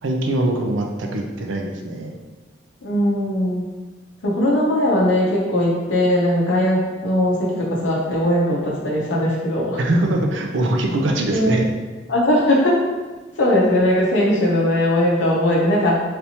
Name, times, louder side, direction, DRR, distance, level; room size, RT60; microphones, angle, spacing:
voice 1, 0.0-2.2 9.8-11.6, right 1 dB, 70° right, 2 dB, 0.5 m, -22 dB
voice 2, 2.8-3.7 4.2-9.8 11.3-11.6 12.1-12.8 13.4-16.0, left 1 dB, 70° left, -4 dB, 0.6 m, -19 dB
3.4 x 2.8 x 2.8 m, 1.2 s
head